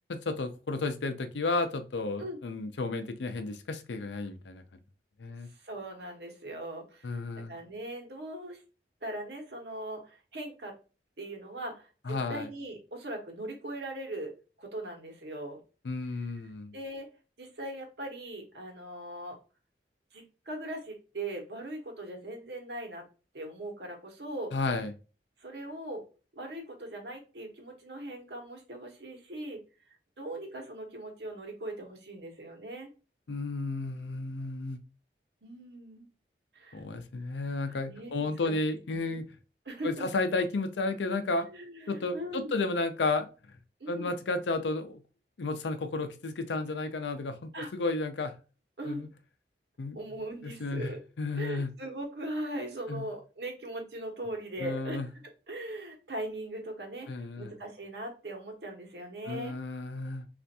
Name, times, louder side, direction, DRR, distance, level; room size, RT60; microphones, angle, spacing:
voice 1, 0.1-4.6 5.2-5.5 7.0-7.5 12.1-12.5 15.8-16.7 24.5-24.9 33.3-34.8 36.7-39.3 39.8-41.5 41.9-43.3 43.9-45.0 45.4-48.3 48.8-49.1 49.8-50.0 50.4-50.9 51.2-51.7 52.9-53.0 54.6-55.1 57.1-57.5 59.3-60.3, left 3 dB, 85° left, 8 dB, 0.5 m, -32 dB
voice 2, 5.4-7.2 7.5-8.6 9.0-10.7 11.2-11.9 12.3-14.3 14.6-15.6 16.2-16.3 16.7-17.1 17.4-19.4 20.1-23.0 23.3-24.5 25.4-26.0 26.3-29.6 30.2-32.9 35.4-36.1 36.5-36.8 37.4-38.5 38.9-39.2 39.7-40.1 41.5-42.5 43.8-44.1 47.5-47.7 48.8-49.0 49.9-51.0 51.3-55.1 55.5-59.6, right 1 dB, 75° right, 2 dB, 1.0 m, -40 dB
3.3 x 2.5 x 2.7 m, 0.33 s
head